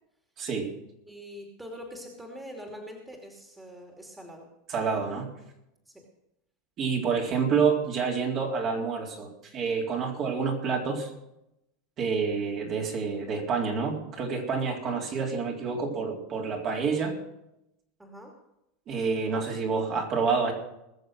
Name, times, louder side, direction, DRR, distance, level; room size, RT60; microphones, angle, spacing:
voice 1, 0.4-0.7 4.7-5.3 6.8-11.1 12.0-17.2 18.9-20.5, right 5 dB, 40° right, -1 dB, 3.6 m, -28 dB
voice 2, 1.1-4.5 5.9-6.1 18.0-18.4, equal, 10° right, 1 dB, 2.7 m, -44 dB
20.5 x 6.9 x 6.4 m, 0.86 s
hypercardioid pair, 110°, 0 cm